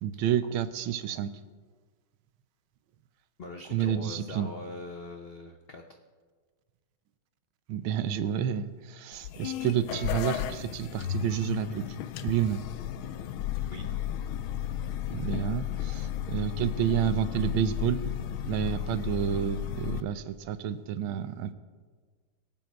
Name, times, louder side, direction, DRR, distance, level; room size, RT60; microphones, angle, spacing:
voice 1, 0.0-1.3 3.7-4.5 7.7-11.9 12.2-12.6 15.1-18.1 18.5-21.5, right 10 dB, 80° right, 11 dB, 1.5 m, -29 dB
voice 2, 3.4-6.0 13.7-13.9, left 3 dB, 65° left, 4 dB, 0.5 m, -42 dB
sound 1, 9.1-20.0, left 10 dB, 85° left, 1.5 m, -34 dB
22.5 x 7.7 x 4.7 m, 1.5 s
omnidirectional pair, 2.2 m